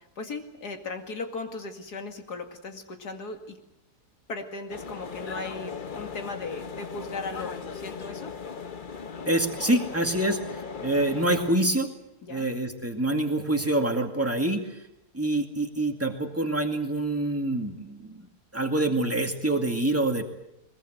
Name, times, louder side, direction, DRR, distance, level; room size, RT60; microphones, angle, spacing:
voice 1, 0.0-3.6 4.3-8.3 12.2-12.5, left 3 dB, 75° left, 5 dB, 2.7 m, -37 dB
sound 1, 4.7-11.5, left 5 dB, 40° left, 0.9 m, -38 dB
voice 2, 9.3-11.9 12.3-14.7 15.1-18.3 18.5-20.2, right 1 dB, 10° right, 3 dB, 2.1 m, -26 dB
21.5 x 21.5 x 8.0 m, 0.90 s
omnidirectional pair, 1.7 m